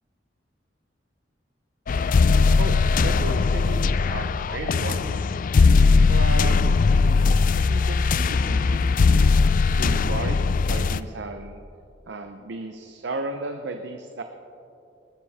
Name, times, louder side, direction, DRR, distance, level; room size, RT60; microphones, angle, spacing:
sound 1, 1.9-11.0, left 4 dB, 45° left, 0.4 m, -19 dB
voice 1, 2.6-5.3 6.0-6.6 6.9-9.3 9.7-11.6 12.1-14.2, right 2 dB, 70° right, 6 dB, 0.7 m, -35 dB
19.0 x 13.5 x 3.5 m, 2.6 s
head